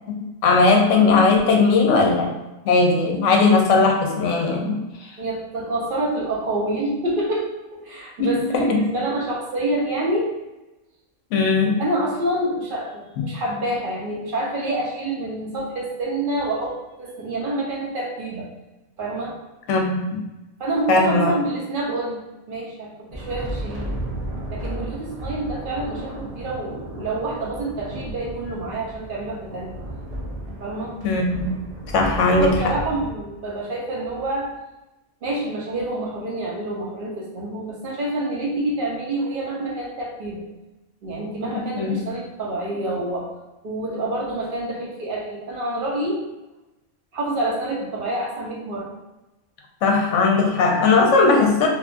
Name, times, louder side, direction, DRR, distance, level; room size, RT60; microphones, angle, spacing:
voice 1, 0.4-2.3 2.6-4.8 8.2-8.8 11.3-11.8 13.2-13.3 19.7-20.2 20.9-21.3 31.0-31.5 31.9-32.7 41.5-42.0 49.8-51.7, left 3 dB, 75° left, 2 dB, 0.9 m, -18 dB
voice 2, 5.2-10.3 11.8-18.5 19.0-19.4 20.6-22.2 22.5-23.9 24.5-29.7 30.6-30.9 32.4-34.5 35.2-40.4 41.0-43.3 43.6-46.2 47.1-48.9, right 1 dB, 50° right, -3 dB, 0.8 m, -27 dB
sound 1, 23.1-33.1, right 1 dB, 70° right, 0.3 m, -33 dB
2.8 x 2.3 x 2.5 m, 1.0 s
omnidirectional pair, 1.3 m